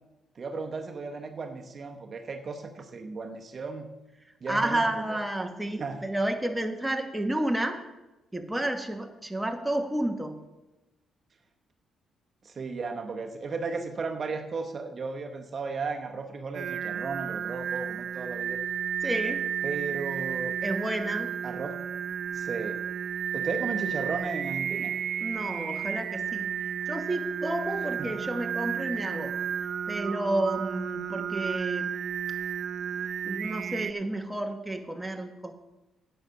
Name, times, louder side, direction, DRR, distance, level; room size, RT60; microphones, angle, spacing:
voice 1, 0.3-3.9 4.4-4.9 5.8-6.0 12.4-18.6 19.6-20.5 21.4-21.8 22.3-22.8 23.3-24.9 28.0-28.1, right 4 dB, 45° right, 4 dB, 1.0 m, -35 dB
voice 2, 4.5-7.8 8.3-10.4 19.0-19.4 20.6-21.4 25.2-31.9 33.2-35.5, right 1 dB, 5° right, 4 dB, 1.3 m, -31 dB
Singing, 16.5-33.9, right 8 dB, 65° right, 0.3 m, -32 dB
10.5 x 7.9 x 5.8 m, 1.0 s
cardioid pair, 90°, 0 cm